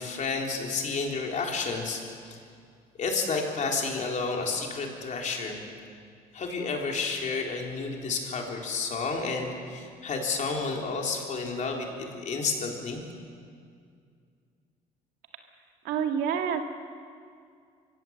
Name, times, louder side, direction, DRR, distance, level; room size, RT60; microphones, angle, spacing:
voice 1, 0.0-2.4 3.0-5.6 6.3-13.1, left 4 dB, 45° left, 1 dB, 3.8 m, -31 dB
voice 2, 15.8-16.6, right 7 dB, 85° right, 4 dB, 2.0 m, -27 dB
24.5 x 16.0 x 7.7 m, 2.3 s
cardioid pair, 110°, 17 cm